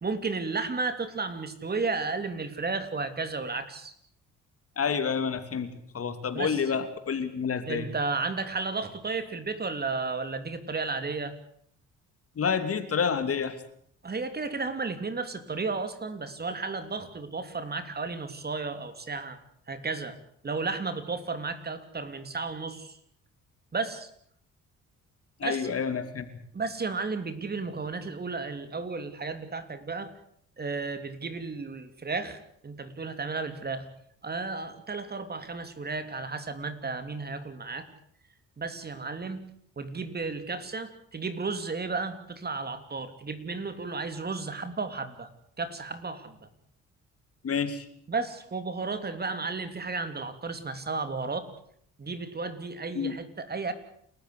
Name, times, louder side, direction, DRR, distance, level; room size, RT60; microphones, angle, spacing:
voice 1, 0.0-3.9 6.3-6.6 7.7-11.3 14.0-19.4 19.7-20.2 20.4-23.0 23.7-24.1 25.4-25.8 26.5-30.1 30.6-33.9 34.2-37.9 38.6-39.4 39.8-45.3 45.6-46.5 48.1-51.5 52.0-53.7, right 4 dB, 30° right, 10 dB, 3.2 m, -33 dB
voice 2, 4.8-7.9 12.4-13.6 25.4-26.3 47.4-47.9 52.9-53.2, left 6 dB, 50° left, 10 dB, 3.0 m, -29 dB
29.0 x 14.5 x 8.5 m, 0.66 s
cardioid pair, 90°, 30 cm